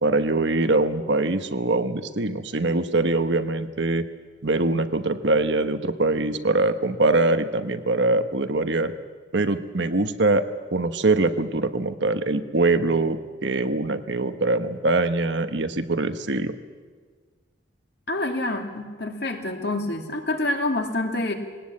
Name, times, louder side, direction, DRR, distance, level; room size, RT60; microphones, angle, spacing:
voice 1, 0.0-4.0 4.4-8.9 9.3-10.4 10.7-16.5, right 2 dB, 65° right, 10 dB, 1.1 m, -23 dB
voice 2, 18.1-21.3, left 2 dB, 55° left, 4 dB, 2.3 m, -27 dB
21.0 x 18.5 x 8.6 m, 1.5 s
head